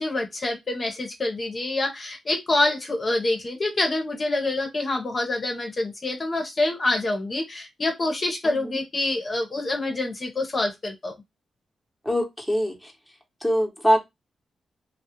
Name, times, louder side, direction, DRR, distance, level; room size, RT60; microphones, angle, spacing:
voice 1, 0.0-11.1, left 2 dB, 40° left, 3 dB, 0.6 m, -26 dB
voice 2, 12.1-12.7 13.4-14.0, equal, ahead, 1 dB, 0.8 m, -22 dB
2.3 x 2.0 x 2.8 m, 0.19 s
cardioid pair, 85°, 0 cm